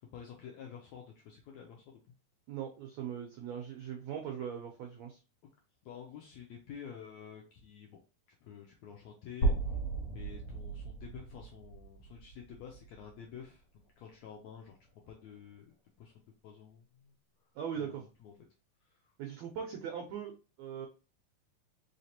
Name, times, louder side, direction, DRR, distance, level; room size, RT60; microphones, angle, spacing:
voice 1, 0.0-2.0 5.8-8.0 8.4-9.5 10.1-13.6 14.0-14.8 15.1-17.1 17.7-18.3 18.8-19.0, left 8 dB, 80° left, 0 dB, 1.6 m, -50 dB
voice 2, 2.5-5.2 17.5-18.1 19.2-20.9, right 8 dB, 85° right, 3 dB, 1.5 m, -40 dB
sound 1, 9.4-13.4, right 3 dB, 55° left, 1.9 m, -35 dB
4.9 x 3.3 x 2.8 m, 0.32 s
omnidirectional pair, 3.9 m